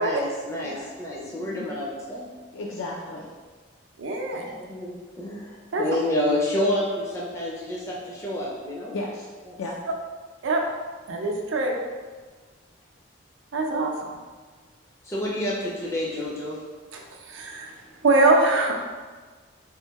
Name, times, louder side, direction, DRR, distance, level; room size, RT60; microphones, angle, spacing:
voice 1, 0.0-2.3 4.6-9.0 15.0-16.6, left 1 dB, 15° left, -5 dB, 0.4 m, -29 dB
voice 2, 1.3-1.7 2.5-3.3 8.9-9.3 9.6-9.8, left 2 dB, 80° left, -2 dB, 0.4 m, -34 dB
voice 3, 4.0-4.6 5.7-5.8 10.4-10.6 11.1-11.7 13.5-14.2 16.9-17.7 18.0-18.8, right 2 dB, 75° right, 1 dB, 0.5 m, -23 dB
2.9 x 2.6 x 3.4 m, 1.4 s
head